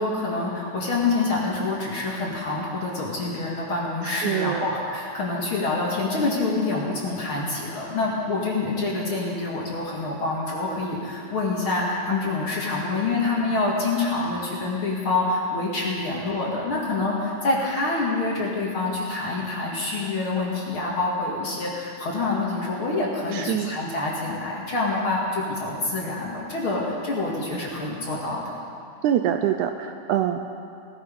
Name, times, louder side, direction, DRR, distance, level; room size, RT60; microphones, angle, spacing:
voice 1, 0.0-28.5, left 3 dB, 45° left, -4 dB, 2.3 m, -26 dB
voice 2, 4.0-4.7 23.3-23.7 29.0-30.4, right 10 dB, 80° right, 6 dB, 1.8 m, -25 dB
18.5 x 13.5 x 5.3 m, 2.5 s
omnidirectional pair, 3.9 m